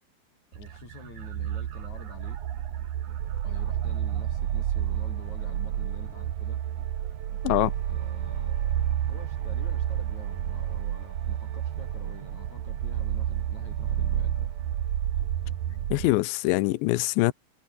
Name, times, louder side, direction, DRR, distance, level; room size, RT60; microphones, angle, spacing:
voice 1, 0.5-2.4 3.4-6.6 7.4-14.4, left 6 dB, 40° left, 3.6 m, -48 dB
sound 1, 0.5-16.1, right 11 dB, 65° right, 2.0 m, -30 dB
voice 2, 15.9-17.3, left 19 dB, 80° left, 2.9 m, -23 dB
omnidirectional pair, 5.6 m